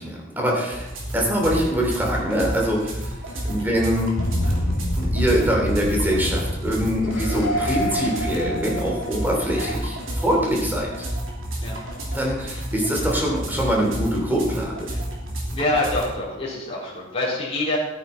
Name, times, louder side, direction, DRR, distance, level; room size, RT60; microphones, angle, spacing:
voice 1, 0.0-3.1 3.4-4.1 4.4-11.1 12.1-14.9, equal, 10° right, -2 dB, 3.0 m, -24 dB
sound 1, 0.7-16.1, right 1 dB, 80° right, 3.0 m, -31 dB
sound 2, 4.1-9.7, equal, 70° left, 3.9 m, -27 dB
voice 2, 15.5-17.8, left 2 dB, 30° left, -6 dB, 4.0 m, -26 dB
13.5 x 9.4 x 4.4 m, 0.94 s
head